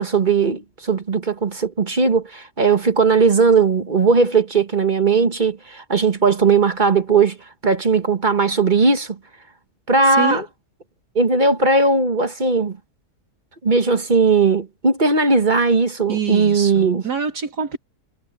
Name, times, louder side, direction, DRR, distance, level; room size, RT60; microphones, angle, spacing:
voice 1, 0.0-7.4 7.6-9.2 9.9-10.4 11.1-12.8 13.6-17.0, right 4 dB, 30° right, 1.4 m, -18 dB
voice 2, 10.1-10.5 16.1-17.8, right 6 dB, 90° right, 3.4 m, -26 dB
omnidirectional pair, 1.7 m